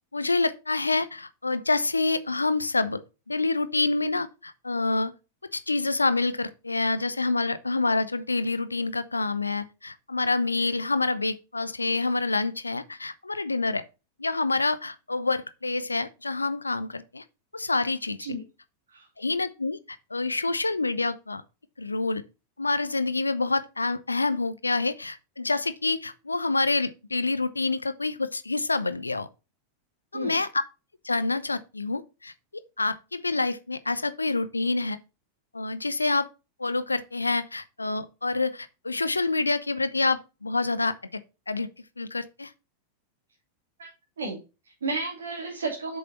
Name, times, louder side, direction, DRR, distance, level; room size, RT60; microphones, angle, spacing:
voice 1, 0.1-3.0 3.3-5.1 5.5-13.8 14.2-17.2 17.5-18.2 19.2-21.4 21.8-22.2 22.6-29.3 30.1-30.5 31.0-32.3 32.8-35.0 35.5-36.3 36.6-41.2 41.5-41.7 42.0-42.5, left 3 dB, 80° left, 0.7 m, -27 dB
voice 2, 44.2-46.0, right 3 dB, 65° right, 2.6 m, -33 dB
7.9 x 6.5 x 4.1 m
figure-of-eight pair, 90°, 0 cm